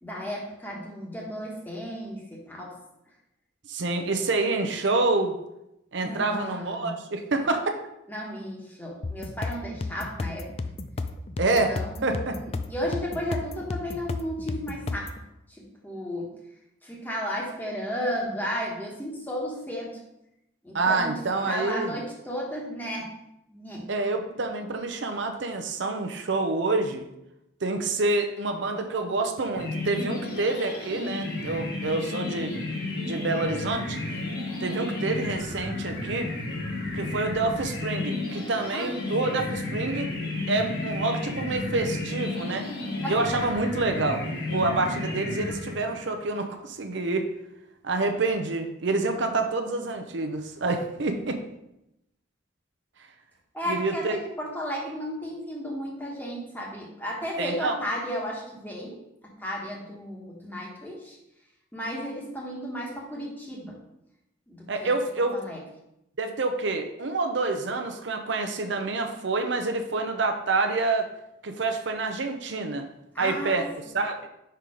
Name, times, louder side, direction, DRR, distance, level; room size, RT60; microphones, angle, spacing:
voice 1, 0.0-2.7 6.0-6.9 8.1-10.5 11.6-15.1 15.5-16.3 16.8-20.0 20.6-21.1 21.5-23.1 23.5-23.9 24.3-24.4 38.7-39.0 43.0-43.4 53.5-61.2 61.7-63.8 64.5-64.9 65.3-65.6 73.1-73.6, equal, 10° left, -3 dB, 1.2 m, -34 dB
voice 2, 3.7-5.4 5.9-7.8 11.4-11.7 12.0-12.4 20.7-22.0 23.9-27.1 27.6-32.5 33.0-34.0 34.6-36.3 36.9-40.1 40.5-42.7 43.1-44.2 44.5-47.3 47.8-51.4 53.7-54.2 57.4-57.8 64.7-65.3 66.2-71.1 71.4-72.9 73.2-73.7 73.9-74.2, right 3 dB, 65° right, 5 dB, 0.6 m, -27 dB
sound 1, 9.0-15.2, left 3 dB, 30° left, 0.3 m, -33 dB
sound 2, 29.5-46.1, left 2 dB, 55° left, 1.7 m, -32 dB
5.3 x 4.4 x 4.9 m, 0.86 s
head